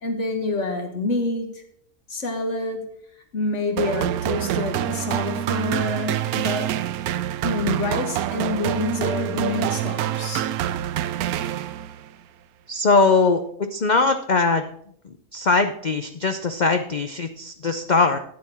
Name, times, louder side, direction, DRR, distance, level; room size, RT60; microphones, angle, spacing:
voice 1, 0.0-1.6 2.1-3.0 3.3-6.7 7.4-10.5, left 3 dB, 55° left, 4 dB, 1.7 m, -27 dB
sound 1, 3.8-12.1, right 11 dB, 80° right, 1.0 m, -26 dB
voice 2, 12.7-14.6 15.3-18.2, left 3 dB, 70° left, 7 dB, 0.4 m, -21 dB
9.5 x 8.6 x 4.3 m, 0.67 s
omnidirectional pair, 1.6 m